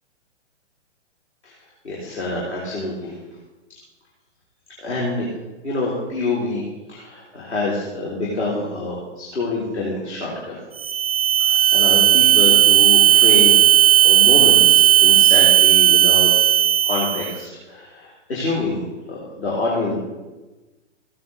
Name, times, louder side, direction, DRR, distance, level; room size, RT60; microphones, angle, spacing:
voice 1, 1.8-3.1 4.8-5.3 5.6-6.6 6.9-10.6 11.4-13.6 14.0-16.3 16.9-18.8 19.1-20.0, left 2 dB, 65° left, -5 dB, 3.6 m, -26 dB
sound 1, 10.8-17.4, right 10 dB, 30° right, 0.4 m, -14 dB
15.0 x 9.3 x 4.0 m, 1.1 s
figure-of-eight pair, 125°, 36 cm